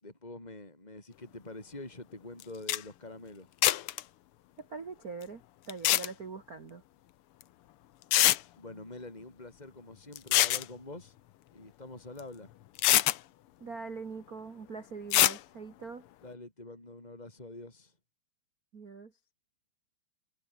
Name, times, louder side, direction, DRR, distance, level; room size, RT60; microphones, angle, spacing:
voice 1, 0.0-3.5 8.6-11.2 11.5-12.5 16.2-17.9, left 2 dB, 10° left, 5.6 m, -46 dB
sound 1, 2.4-2.5 2.7-2.8 3.6-4.0 5.7-6.1 7.4-7.5 8.1-8.4 10.2-10.6 12.2-12.3 12.8-13.2 15.1-15.4, left 14 dB, 90° left, 1.2 m, -24 dB
voice 2, 4.6-5.4 5.7-6.8 13.6-16.0 18.7-19.1, right 4 dB, 35° right, 1.7 m, -42 dB
omnidirectional pair, 3.6 m